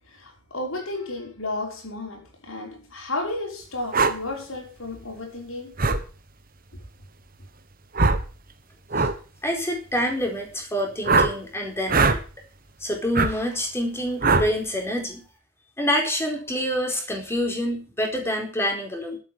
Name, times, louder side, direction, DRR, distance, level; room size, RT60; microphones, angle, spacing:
voice 1, 0.1-5.8, left 2 dB, 85° left, 5.3 m, -33 dB
sound 1, 3.9-4.1 5.8-6.0 7.9-8.3 8.9-9.1 11.0-11.3 11.9-12.2 13.1-13.3 14.2-14.5, right 3 dB, 45° right, 1.4 m, -20 dB
voice 2, 9.4-12.2 12.8-15.2 15.8-19.2, equal, 10° left, 4.3 m, -27 dB
12.5 x 8.7 x 7.4 m
head